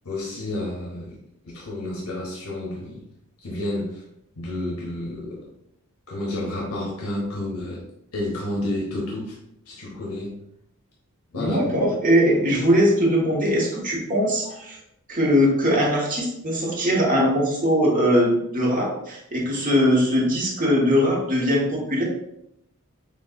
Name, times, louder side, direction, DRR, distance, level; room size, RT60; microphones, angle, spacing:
voice 1, 0.0-1.2 1.4-3.1 3.4-4.0 4.4-5.5 6.1-7.8 8.1-9.4 9.7-10.4 11.3-11.9, left 1 dB, 85° left, -3 dB, 1.0 m, -30 dB
voice 2, 11.3-14.8 15.1-22.0, equal, 40° right, -3 dB, 1.3 m, -21 dB
7.0 x 2.6 x 2.6 m, 0.79 s
head